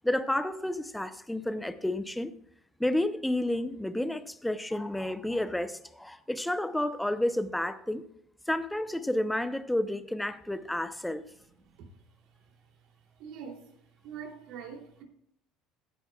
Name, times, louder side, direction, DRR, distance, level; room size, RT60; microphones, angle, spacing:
voice 1, 0.0-2.3 2.8-8.1 8.5-11.2, left 1 dB, 5° left, 0.7 m, -30 dB
voice 2, 13.2-13.7 14.0-15.0, right 7 dB, 70° right, 3.0 m, -43 dB
16.0 x 9.3 x 2.3 m
cardioid pair, 120°, 0 cm